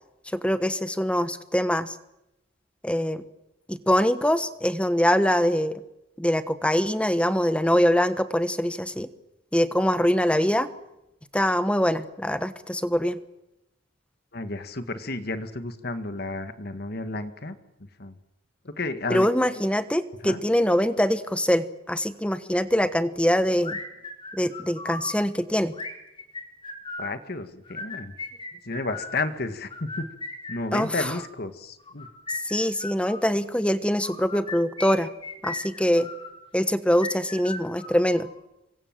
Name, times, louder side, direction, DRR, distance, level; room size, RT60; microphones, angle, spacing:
voice 1, 0.3-1.9 2.8-3.2 3.7-5.8 6.2-9.1 9.5-10.7 11.3-13.2 19.1-23.8 24.3-25.7 30.7-31.1 32.4-35.1 35.4-36.1 36.5-38.3, equal, 5° left, 11 dB, 1.2 m, -23 dB
voice 2, 14.3-17.6 18.0-18.1 18.6-19.3 20.2-20.4 27.0-28.1 28.7-30.1 30.5-32.1, left 2 dB, 55° left, 10 dB, 1.7 m, -32 dB
sound 1, 23.6-25.1 25.7-27.2 27.6-29.2 29.7-31.3 31.9-33.3 34.0-36.3 36.9-38.4, left 3 dB, 25° left, 4.3 m, -37 dB
28.0 x 24.0 x 7.6 m, 0.89 s
head